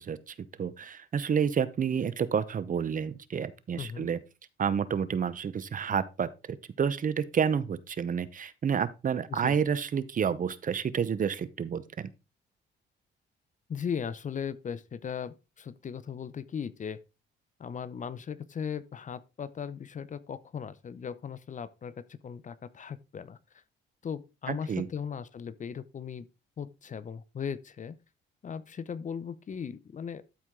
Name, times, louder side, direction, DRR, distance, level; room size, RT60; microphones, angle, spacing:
voice 1, 0.0-4.2 4.6-12.1 24.5-24.9, right 7 dB, 40° right, 0.8 m, -30 dB
voice 2, 3.8-4.1 9.3-9.6 13.7-17.0 17.6-23.4 24.0-26.3 26.6-28.0 28.4-30.2, left 7 dB, 40° left, 0.6 m, -38 dB
12.5 x 4.6 x 3.7 m
cardioid pair, 90°, 20 cm